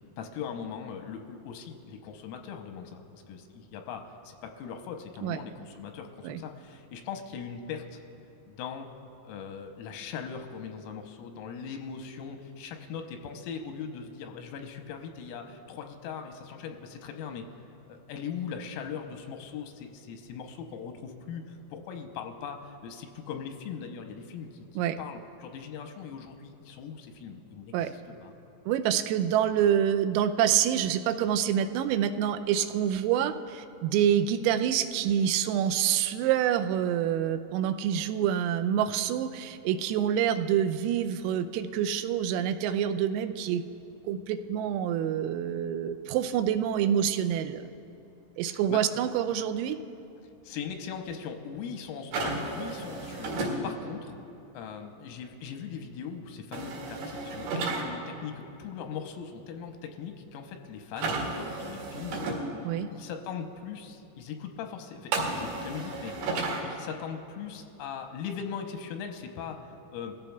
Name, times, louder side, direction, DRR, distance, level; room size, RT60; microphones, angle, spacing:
voice 1, 0.2-8.0 8.5-8.9 9.2-17.4 17.9-28.4 48.4-48.8 50.4-54.2 54.5-62.3 62.9-66.3 66.6-70.1, left 7 dB, 90° left, 4 dB, 3.4 m, -40 dB
voice 2, 28.7-43.6 44.1-47.6 48.4-49.8 62.6-62.9, right 9 dB, 90° right, 9 dB, 3.3 m, -27 dB
sound 1, 52.1-53.5 56.5-57.8 61.0-62.4 65.1-66.6, right 3 dB, 70° right, 4.4 m, -32 dB
21.5 x 15.0 x 2.3 m, 2.8 s
omnidirectional pair, 6.0 m